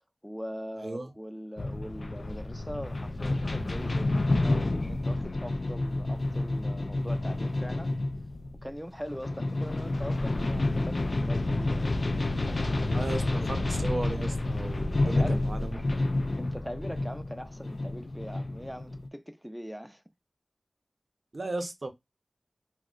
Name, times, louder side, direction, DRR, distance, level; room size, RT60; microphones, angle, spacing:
voice 1, 0.2-7.9 8.6-13.5 15.0-15.9 16.4-20.0, equal, ahead, 0.5 m, -41 dB
voice 2, 0.8-1.1 12.9-13.2 13.5-15.8 21.3-21.9, right 2 dB, 65° right, 0.6 m, -35 dB
sound 1, 1.6-19.1, left 2 dB, 75° left, 0.3 m, -29 dB
2.3 x 2.1 x 3.7 m
wide cardioid pair, 45°, 0 cm